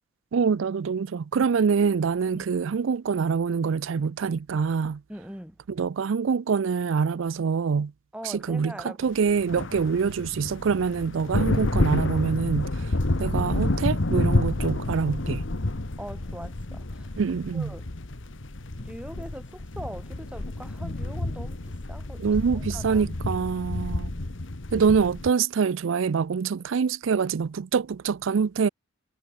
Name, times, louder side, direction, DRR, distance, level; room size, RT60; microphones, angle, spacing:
voice 1, 0.3-5.0 5.8-7.9 8.3-8.7 9.0-12.7 13.2-15.4 17.2-17.7 22.2-24.1 24.7-28.7, right 6 dB, 70° right, 0.4 m, -25 dB
voice 2, 5.1-5.6 8.1-9.4 16.0-17.1 17.5-17.9 18.8-22.3 22.5-23.0, equal, 5° right, 5.5 m, -42 dB
sound 1, 9.3-25.3, left 2 dB, 65° left, 1.4 m, -29 dB
head